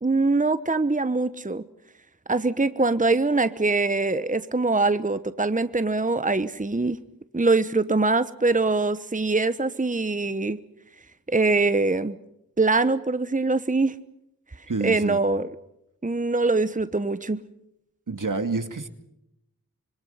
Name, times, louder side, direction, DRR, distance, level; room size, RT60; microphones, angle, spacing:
voice 1, 0.0-1.6 2.3-7.0 7.3-10.6 11.3-12.1 12.6-13.9 14.8-15.5 16.0-17.4, right 3 dB, 25° right, 13 dB, 1.1 m, -23 dB
voice 2, 14.7-15.2 18.1-18.9, right 3 dB, 65° right, 9 dB, 2.3 m, -28 dB
26.0 x 24.5 x 5.7 m, 0.82 s
wide cardioid pair, 45°, 33 cm